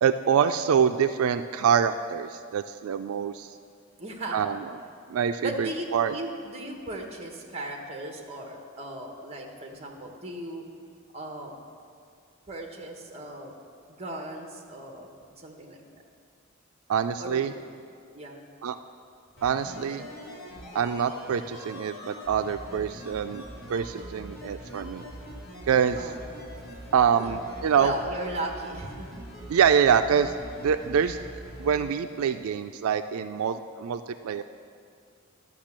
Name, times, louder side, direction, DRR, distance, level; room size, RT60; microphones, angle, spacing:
voice 1, 0.0-3.5 4.3-4.6 5.1-6.1 16.9-17.5 18.6-18.8 19.4-20.1 20.7-23.4 23.7-25.1 25.7-26.1 26.9-27.9 29.5-30.3 30.6-31.2 31.6-34.4, right 7 dB, 90° right, 9 dB, 0.4 m, -25 dB
voice 2, 4.0-4.5 5.4-10.6 11.1-11.5 12.5-13.6 13.9-16.0 17.2-17.6 18.1-18.4 26.0-26.2 27.2-29.1, right 1 dB, 30° right, 2 dB, 1.3 m, -37 dB
sound 1, 19.3-31.9 32.2-32.3, equal, 50° left, 2.8 m, -43 dB
12.0 x 5.8 x 7.4 m, 2.3 s
head